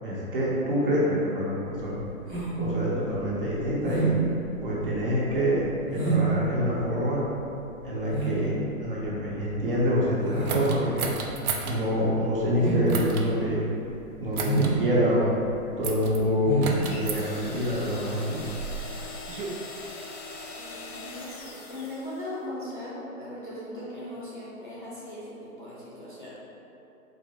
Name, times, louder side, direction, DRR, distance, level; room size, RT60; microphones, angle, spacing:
voice 1, 0.0-2.0 2.6-4.2 4.6-5.6 5.9-7.3 7.8-11.1 11.6-13.8 14.2-15.3 15.8-18.4, equal, 40° right, -7 dB, 0.8 m, -26 dB
sound 1, 1.7-18.0, right 3 dB, 10° right, 0.9 m, -31 dB
sound 2, 10.5-11.8 12.9-13.3 14.3-14.7 15.8-16.2 16.6-17.2 18.1-19.5, right 5 dB, 75° right, 0.6 m, -33 dB
sound 3, 16.7-22.4, left 3 dB, 75° left, 0.8 m, -41 dB
voice 2, 20.6-26.3, left 1 dB, 35° left, -9 dB, 0.4 m, -39 dB
4.2 x 2.5 x 3.3 m, 2.9 s
hypercardioid pair, 170°, 44 cm